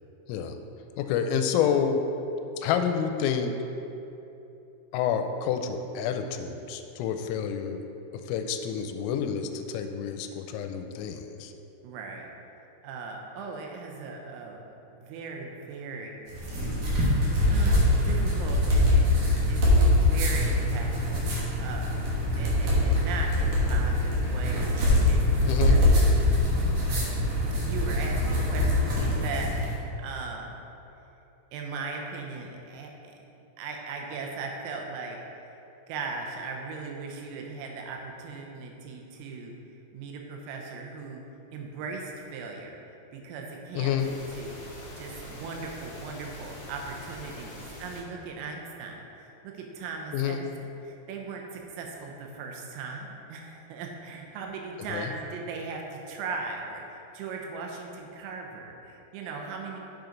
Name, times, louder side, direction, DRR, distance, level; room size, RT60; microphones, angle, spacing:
voice 1, 1.0-2.0 2.6-3.5 4.9-7.8 8.3-11.5 25.5-25.8 43.8-44.1 50.1-50.4 54.9-55.1, left 8 dB, 90° left, 6 dB, 3.2 m, -28 dB
voice 2, 11.8-12.3 12.8-16.1 17.5-19.2 19.5-21.3 21.6-22.1 22.4-25.4 25.7-25.9 26.3-26.8 27.6-30.5 31.5-33.2 33.6-35.2 35.9-39.5 39.9-41.2 41.5-59.8, right 4 dB, 90° right, 1 dB, 3.6 m, -38 dB
sound 1, 16.3-29.7, left 1 dB, 60° right, 2.3 m, -23 dB
sound 2, 44.0-48.0, left 1 dB, 60° left, 2.0 m, -44 dB
7.9 x 7.1 x 3.9 m, 2.9 s
omnidirectional pair, 5.8 m